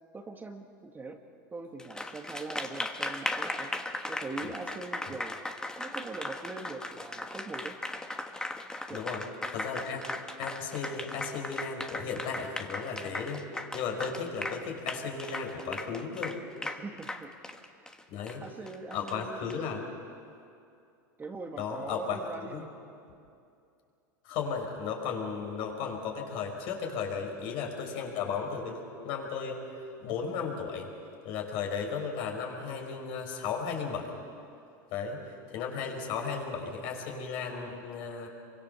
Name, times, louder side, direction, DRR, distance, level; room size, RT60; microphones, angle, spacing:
voice 1, 0.1-1.2 1.5-3.7 4.1-5.4 5.8-7.8 8.9-9.2 16.6-17.3 18.2-19.6 21.2-22.7, right 3 dB, 15° right, 4 dB, 1.7 m, -42 dB
Applause, 1.8-19.5, left 1 dB, 5° left, 1.4 m, -37 dB
voice 2, 8.9-9.2 9.5-10.1 10.4-16.4 18.1-18.4 18.9-19.9 21.6-22.2 22.5-22.7 24.2-30.9 31.2-34.1 34.9-38.3, left 5 dB, 55° left, 2 dB, 5.4 m, -35 dB
26.5 x 24.0 x 7.1 m, 2.5 s
supercardioid pair, 115°, 10 cm